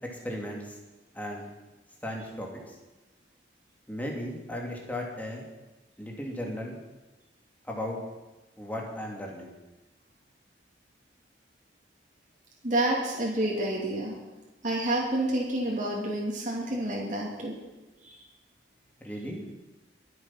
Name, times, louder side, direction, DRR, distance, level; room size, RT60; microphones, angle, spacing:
voice 1, 0.0-0.8 1.1-1.4 2.0-2.8 3.9-5.4 6.0-6.8 7.6-8.0 8.6-9.5 19.0-19.4, left 1 dB, 10° left, -1 dB, 2.8 m, -36 dB
voice 2, 12.6-14.2 14.6-17.6 18.0-18.2, right 1 dB, 45° right, -4 dB, 2.9 m, -29 dB
23.0 x 7.8 x 6.0 m, 1.1 s
head